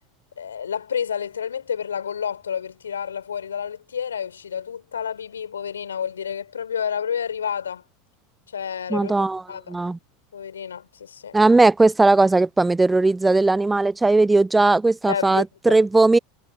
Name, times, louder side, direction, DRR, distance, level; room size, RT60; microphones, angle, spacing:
voice 1, 0.4-7.8 8.5-9.8 10.3-11.4 15.1-15.8, left 7 dB, 80° left, 4.9 m, -30 dB
voice 2, 8.9-9.4 9.7-10.0 11.3-16.2, right 3 dB, 10° right, 0.4 m, -18 dB
figure-of-eight pair, 80°, 0 cm